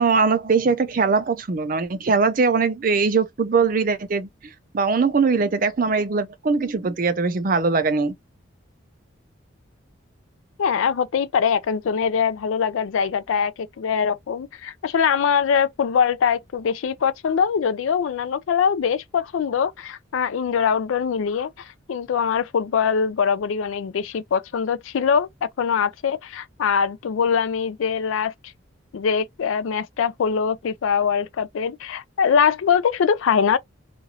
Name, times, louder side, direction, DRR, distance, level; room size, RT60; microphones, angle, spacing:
voice 1, 0.0-8.2, right 4 dB, 45° right, 0.4 m, -21 dB
voice 2, 10.6-28.3 28.9-33.6, left 6 dB, 80° left, 0.4 m, -22 dB
2.9 x 2.5 x 2.7 m
head